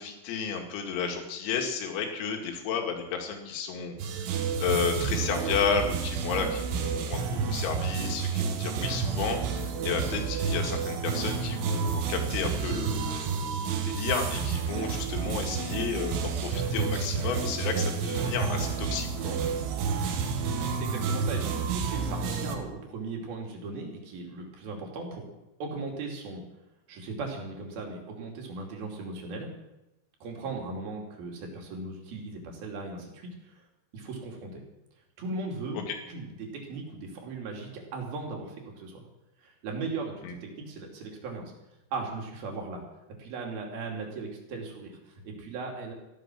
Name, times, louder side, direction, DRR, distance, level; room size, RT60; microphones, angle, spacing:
voice 1, 0.0-4.3 4.6-19.4 35.7-36.0 40.2-40.3, left 6 dB, 85° left, 2 dB, 4.9 m, -32 dB
sound 1, 4.0-22.6, right 6 dB, 75° right, 3.7 m, -30 dB
voice 2, 20.6-25.3 25.6-26.4 26.9-29.5 30.2-33.6 33.9-34.6 35.2-39.0 39.4-41.5 41.9-42.8 43.2-45.9, right 3 dB, 50° right, 0 dB, 4.2 m, -38 dB
15.5 x 12.5 x 6.2 m, 0.95 s
omnidirectional pair, 6.0 m